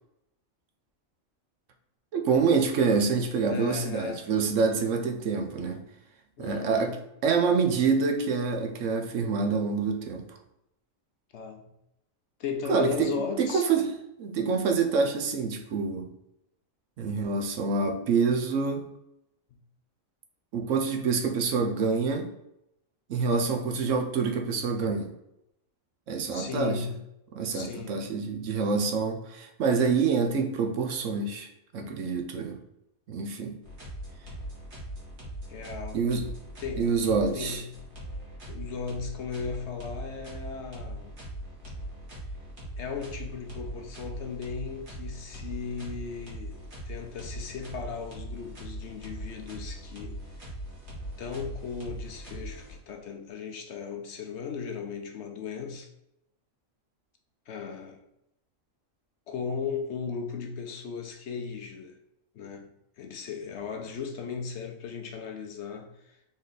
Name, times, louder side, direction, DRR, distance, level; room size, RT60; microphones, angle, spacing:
voice 1, 2.1-5.8 6.4-7.0 7.2-10.4 12.7-13.1 13.4-13.9 14.2-16.1 17.0-18.9 20.5-22.3 23.1-25.1 26.1-26.8 27.3-32.6 33.1-33.6 35.9-36.3 36.8-37.6, right 5 dB, 70° right, 1.0 m, -26 dB
voice 2, 3.3-4.3 6.4-7.0 11.3-11.7 12.4-13.7 19.5-19.6 26.3-27.0 27.5-28.0 35.5-36.0 36.6-36.9 37.3-37.8 38.5-41.2 42.8-50.2 51.2-55.9 57.5-58.0 59.3-62.0 62.3-62.7 63.0-66.2, left 6 dB, 65° left, 0.8 m, -36 dB
sound 1, 33.6-53.1, right 1 dB, 55° right, 1.8 m, -40 dB
4.1 x 3.3 x 3.9 m
omnidirectional pair, 1.4 m